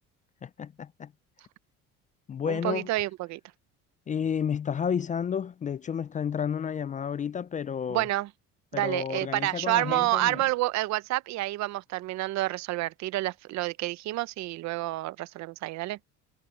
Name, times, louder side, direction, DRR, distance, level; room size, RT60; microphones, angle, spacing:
voice 1, 0.4-1.1 2.3-2.9 4.1-8.1 8.7-10.4, left 7 dB, 25° left, 0.4 m, -31 dB
voice 2, 2.5-3.4 7.9-8.3 8.7-16.0, right 17 dB, 65° right, 0.8 m, -29 dB
supercardioid pair, 95°, 30 cm